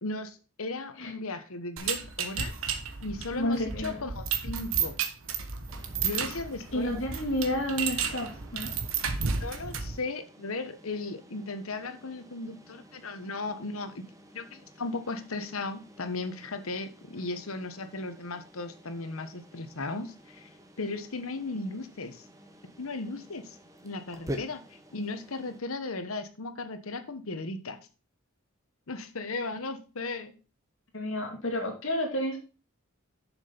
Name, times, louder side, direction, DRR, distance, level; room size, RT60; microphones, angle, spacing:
voice 1, 0.0-2.7 3.0-5.0 6.0-6.9 9.4-13.9 14.3-20.5 20.8-22.2 22.8-23.6 23.8-27.8 28.9-30.3, left 3 dB, 80° left, 9 dB, 1.2 m, -36 dB
sound 1, 1.8-10.0, right 6 dB, 75° right, 1.2 m, -33 dB
voice 2, 3.4-4.1 6.7-8.7 30.9-32.4, left 1 dB, 65° left, 2 dB, 2.6 m, -30 dB
sound 2, 5.7-25.6, equal, 15° right, 1.1 m, -49 dB
7.2 x 6.2 x 5.4 m, 0.34 s
head